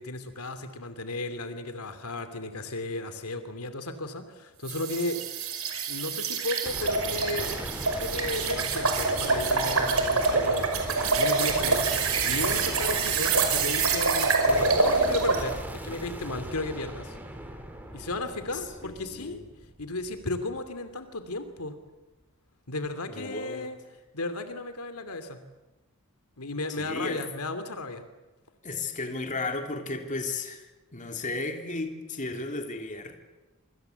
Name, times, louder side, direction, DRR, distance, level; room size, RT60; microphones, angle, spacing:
voice 1, 0.0-5.2 5.9-7.6 8.0-17.2 17.9-19.4 19.8-21.7 22.7-23.8 24.1-25.4 26.4-28.0, left 2 dB, 90° left, 9 dB, 2.8 m, -34 dB
sound 1, 4.7-15.5, right 4 dB, 70° right, 5.6 m, -26 dB
sound 2, 6.7-20.6, right 1 dB, 10° right, 3.2 m, -38 dB
voice 2, 18.5-19.4 23.1-23.7 26.7-27.2 28.6-30.7 30.9-33.2, left 3 dB, 35° left, 4 dB, 3.3 m, -34 dB
26.5 x 24.5 x 8.1 m, 1.1 s
head